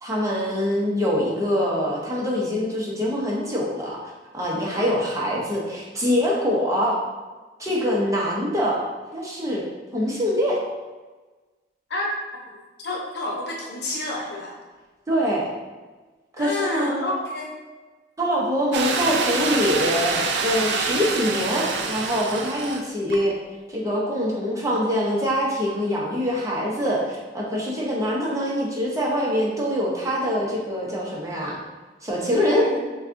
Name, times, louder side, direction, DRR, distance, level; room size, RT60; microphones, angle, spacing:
voice 1, 0.0-4.0 4.3-7.0 7.6-8.8 9.1-9.6 9.9-10.6 15.1-15.5 16.4-17.1 18.2-23.3 23.7-31.6 32.0-32.7, equal, 20° right, -4 dB, 0.8 m, -24 dB
voice 2, 12.8-14.5 16.4-17.5 32.4-32.8, left 2 dB, 65° left, -2 dB, 0.9 m, -29 dB
sound 1, 18.7-22.8 23.1-23.2, right 4 dB, 70° right, 0.4 m, -26 dB
6.9 x 2.3 x 2.6 m, 1.3 s
head